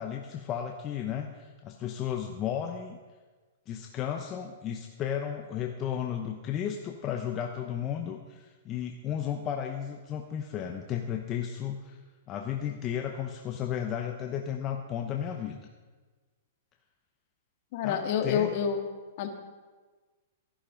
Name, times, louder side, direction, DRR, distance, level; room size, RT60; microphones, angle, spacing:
voice 1, 0.0-3.0 3.7-12.0 12.3-15.6 17.8-18.5, left 9 dB, 25° left, 3 dB, 0.8 m, -34 dB
voice 2, 17.7-18.8 19.2-19.3, left 7 dB, 50° left, 5 dB, 1.7 m, -28 dB
13.5 x 11.5 x 5.1 m, 1.3 s
hypercardioid pair, 150°, 0 cm